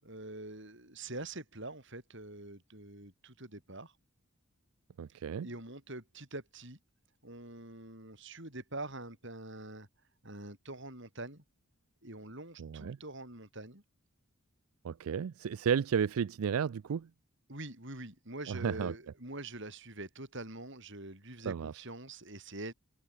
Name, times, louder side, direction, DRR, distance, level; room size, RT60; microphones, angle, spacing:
voice 1, 0.0-3.9 5.1-6.8 7.2-9.9 10.2-11.4 12.0-13.8 17.5-22.7, right 2 dB, 55° right, 7.3 m, -45 dB
voice 2, 5.0-5.5 12.6-13.0 14.8-17.1 18.5-18.9 21.5-21.8, right 7 dB, 80° right, 0.4 m, -33 dB
head